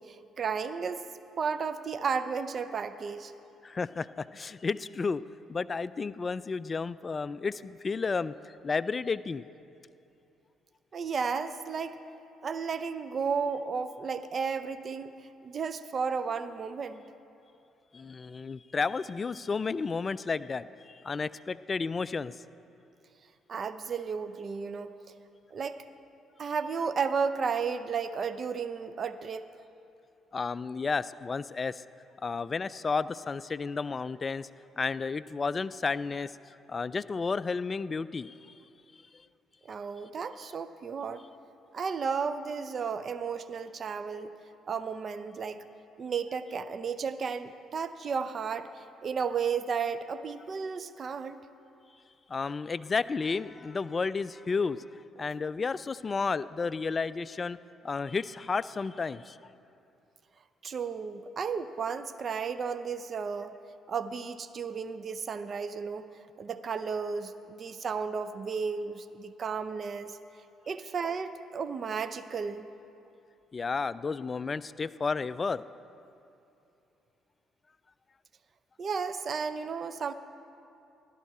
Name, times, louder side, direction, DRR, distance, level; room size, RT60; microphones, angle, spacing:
voice 1, 0.0-3.3 10.9-12.0 12.4-17.1 23.5-24.9 25.5-25.8 26.4-29.5 39.6-41.2 41.7-44.3 44.7-45.6 46.0-51.4 55.2-55.3 60.6-63.6 63.9-70.2 70.7-72.7 78.8-80.1, right 5 dB, 45° right, 12 dB, 0.5 m, -33 dB
voice 2, 3.6-5.2 5.5-9.4 17.9-22.4 30.3-31.8 32.2-34.5 34.8-38.3 52.3-57.6 57.8-59.4 73.5-75.6, left 4 dB, 35° left, 15 dB, 0.3 m, -32 dB
15.0 x 11.5 x 4.2 m, 2.7 s
supercardioid pair, 80°, 0 cm